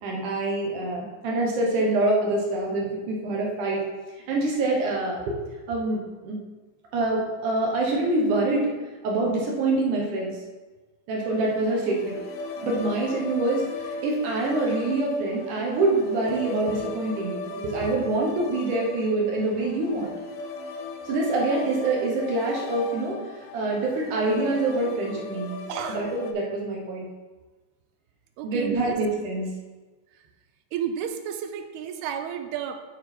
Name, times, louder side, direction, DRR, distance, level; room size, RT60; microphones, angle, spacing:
voice 1, 0.0-3.8 4.3-5.2 5.7-6.4 6.9-8.7 9.0-10.4 11.1-12.1 12.6-20.1 21.1-25.6 25.9-27.0 28.4-29.5, right 2 dB, 65° right, -2 dB, 2.3 m, -25 dB
sound 1, 11.3-26.3, left 3 dB, 80° left, 2.4 m, -38 dB
voice 2, 25.7-26.0 28.4-29.0 30.7-32.8, right 8 dB, 85° right, 7 dB, 2.6 m, -32 dB
9.8 x 4.7 x 4.4 m, 1.2 s
omnidirectional pair, 4.7 m